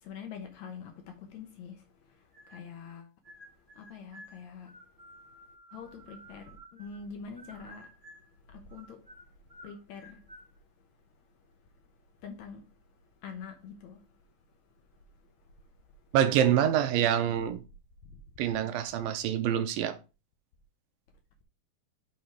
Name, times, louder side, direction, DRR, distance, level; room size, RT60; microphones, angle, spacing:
voice 1, 0.0-3.1 3.6-4.8 5.7-7.9 8.5-9.2 9.6-10.4 12.2-12.8 13.2-14.1 15.4-15.5 18.1-18.2, left 6 dB, 70° left, 1.9 m, -45 dB
African Grey singing a melody, 2.3-2.9 3.2-7.1 7.4-8.3 8.7-10.5, equal, 10° right, 1.7 m, -53 dB
voice 2, 16.1-17.6 18.4-20.0, right 10 dB, 85° right, 2.6 m, -26 dB
6.3 x 5.2 x 4.5 m
omnidirectional pair, 4.1 m